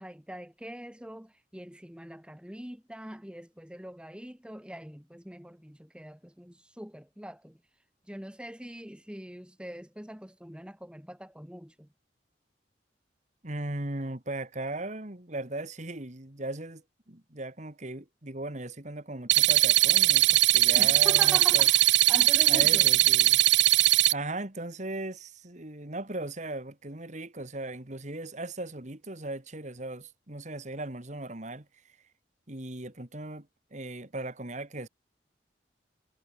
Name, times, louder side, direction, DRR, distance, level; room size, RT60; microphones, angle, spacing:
voice 1, 0.0-7.6 8.1-11.9 20.7-22.9, equal, 5° right, 1.6 m, -42 dB
voice 2, 13.4-21.7 22.5-23.4 24.1-31.7 32.5-34.9, right 2 dB, 40° right, 2.2 m, -38 dB
sound 1, 19.3-24.1, right 17 dB, 75° right, 0.8 m, -21 dB
head